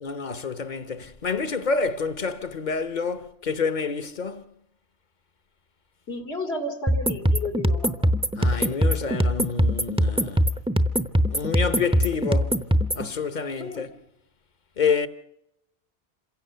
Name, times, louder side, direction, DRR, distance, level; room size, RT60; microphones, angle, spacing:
voice 1, 0.0-4.5 8.3-10.5 11.3-12.6 12.9-13.9 14.8-15.1, left 5 dB, 45° left, 1.1 m, -28 dB
voice 2, 6.1-7.9 13.6-13.8, left 2 dB, 85° left, 2.9 m, -32 dB
sound 1, 6.9-13.1, equal, 5° right, 0.7 m, -22 dB
27.5 x 16.5 x 6.8 m
omnidirectional pair, 1.1 m